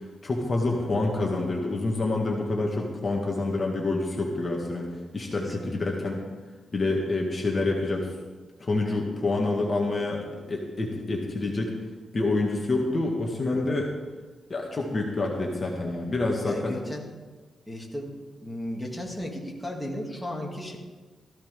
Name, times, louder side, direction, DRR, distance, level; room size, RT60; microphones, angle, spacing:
voice 1, 0.2-6.2 6.7-8.1 8.6-11.7 12.1-13.9 14.5-16.7, left 2 dB, 35° left, -1 dB, 1.9 m, -27 dB
voice 2, 5.3-5.7 13.5-13.8 15.7-15.8 16.4-17.1 17.7-18.1 18.4-20.8, left 1 dB, 5° left, -2 dB, 2.7 m, -35 dB
17.0 x 14.5 x 3.7 m, 1.4 s
cardioid pair, 115°, 0 cm